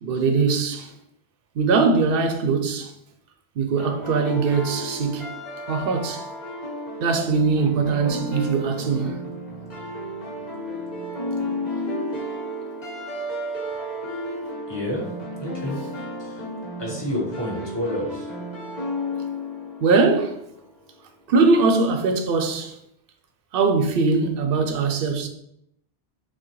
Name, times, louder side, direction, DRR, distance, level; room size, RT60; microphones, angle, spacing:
voice 1, 0.0-0.9 1.6-2.9 3.6-5.3 5.7-6.2 7.0-9.2 19.8-20.4 21.3-22.7 23.5-25.3, right 4 dB, 65° right, 0.7 m, -21 dB
sound 1, 3.8-20.7, left 1 dB, 40° left, 1.3 m, -33 dB
voice 2, 14.7-15.0 15.4-15.8 16.2-16.5 16.8-18.3, left 1 dB, 25° left, 1.1 m, -30 dB
5.9 x 2.2 x 3.0 m
omnidirectional pair, 1.1 m